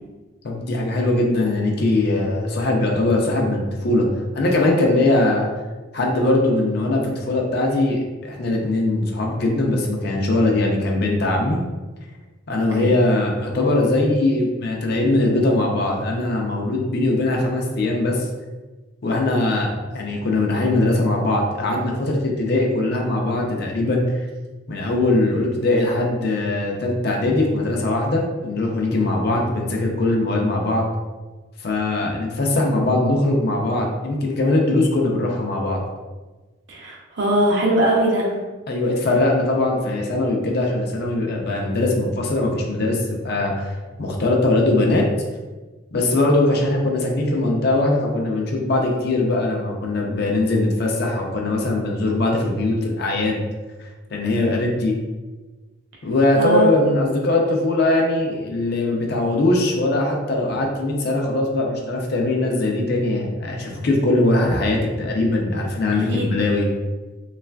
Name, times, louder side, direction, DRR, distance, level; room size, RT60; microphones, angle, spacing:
voice 1, 0.4-4.1 4.3-5.5 5.9-11.6 12.5-18.3 19.0-24.3 24.7-30.8 31.6-35.8 38.7-43.7 44.0-45.0 45.9-53.4 53.8-55.0 56.0-66.7, left 2 dB, 50° left, 0 dB, 0.4 m, -21 dB
voice 2, 36.7-38.3 56.3-56.7 65.9-66.3, right 1 dB, 60° right, -1 dB, 0.6 m, -20 dB
3.2 x 2.4 x 2.2 m, 1.3 s
head